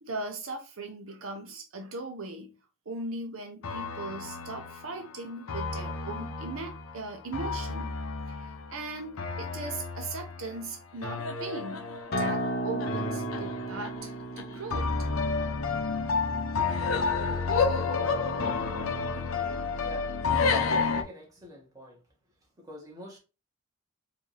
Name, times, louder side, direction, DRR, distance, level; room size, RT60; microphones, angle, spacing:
voice 1, 0.0-2.5 2.9-7.9 8.3-11.9 12.2-14.9, right 3 dB, 75° right, 0.8 m, -39 dB
sound 1, 3.6-21.0, left 4 dB, 80° left, 0.7 m, -31 dB
Acoustic guitar, 12.1-17.3, right 1 dB, 45° left, 0.8 m, -35 dB
voice 2, 19.7-20.1 20.8-22.0 22.6-23.2, equal, 15° right, 1.5 m, -46 dB
4.8 x 2.7 x 3.3 m
head